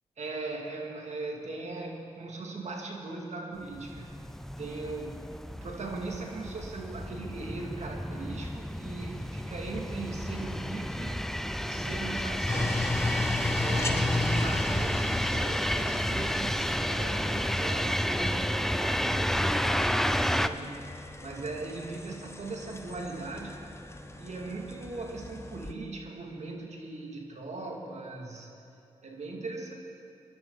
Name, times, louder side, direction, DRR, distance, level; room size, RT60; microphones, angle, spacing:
voice 1, 0.2-4.1 4.6-5.2 5.5-12.9 13.2-19.8 20.3-23.5 24.2-28.5 29.0-29.7, right 3 dB, 55° right, 0 dB, 2.5 m, -39 dB
sound 1, 3.7-20.5, equal, 5° left, 0.6 m, -31 dB
sound 2, 12.5-25.7, left 2 dB, 20° left, 1.2 m, -35 dB
23.0 x 11.5 x 4.1 m, 2.8 s
supercardioid pair, 40°, 14 cm